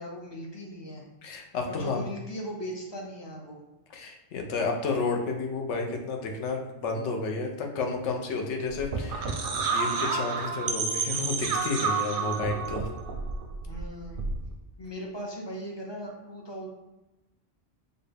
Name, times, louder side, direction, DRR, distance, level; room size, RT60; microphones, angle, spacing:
voice 1, 0.0-1.0 1.7-3.6 13.6-14.2 14.8-16.7, equal, 40° left, -1 dB, 0.3 m, -38 dB
voice 2, 1.2-2.1 3.9-12.9, left 3 dB, 80° left, 2 dB, 0.9 m, -31 dB
sound 1, 8.7-14.5, right 4 dB, 60° right, 0.6 m, -30 dB
4.2 x 2.2 x 3.3 m, 1.0 s
omnidirectional pair, 1.2 m